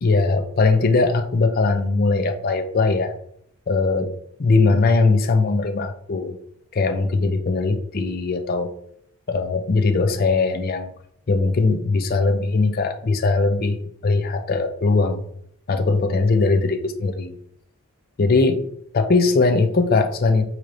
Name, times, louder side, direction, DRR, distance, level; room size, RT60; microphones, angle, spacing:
voice 1, 0.0-3.1 3.7-4.1 4.4-6.4 6.7-8.7 9.3-10.9 11.3-13.8 14.0-15.2 15.7-17.3 18.2-18.6 18.9-20.5, left 3 dB, 40° left, 6 dB, 0.4 m, -20 dB
4.6 x 2.8 x 2.5 m, 0.70 s
head